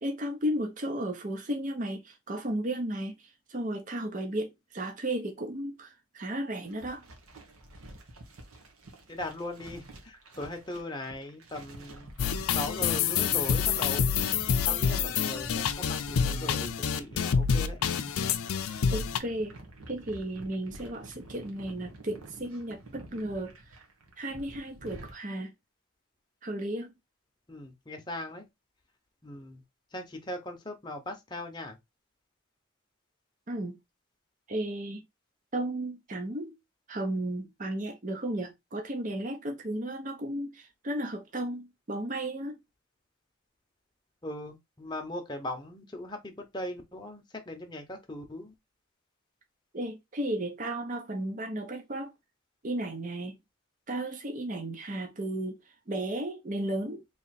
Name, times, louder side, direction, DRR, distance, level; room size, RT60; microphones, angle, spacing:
voice 1, 0.0-3.2 3.5-7.0 18.9-19.5 19.9-23.5 24.2-25.5 26.4-26.9 33.5-33.8 34.5-35.0 35.5-36.5 36.9-42.6 49.7-52.1 52.6-53.4 53.9-55.6 55.9-57.0, right 1 dB, 35° right, 0.6 m, -34 dB
sound 1, 6.6-25.1, right 1 dB, 90° right, 1.1 m, -47 dB
voice 2, 9.1-12.1 12.5-14.1 14.7-17.8 27.5-28.5 29.2-29.6 29.9-31.8 44.2-48.5, left 1 dB, 20° left, 0.8 m, -39 dB
sound 2, 12.2-19.2, left 7 dB, 90° left, 0.5 m, -27 dB
3.2 x 2.9 x 4.1 m
head